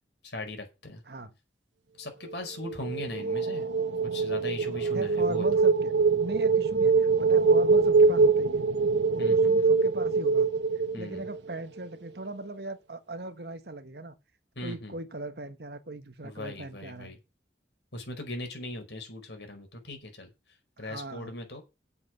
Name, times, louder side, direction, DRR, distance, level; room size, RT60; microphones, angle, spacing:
voice 1, 0.2-1.0 2.0-3.6 4.0-5.5 9.2-9.7 10.9-11.2 14.5-14.9 16.2-17.2 17.9-20.3 20.8-21.6, left 1 dB, 70° left, 5.1 m, -39 dB
sound 1, 2.6-11.5, right 4 dB, 85° right, 0.8 m, -24 dB
voice 2, 4.9-8.7 9.3-10.5 10.9-14.2 14.6-17.1 20.8-21.3, right 2 dB, 60° right, 1.4 m, -39 dB
8.3 x 8.0 x 8.0 m
head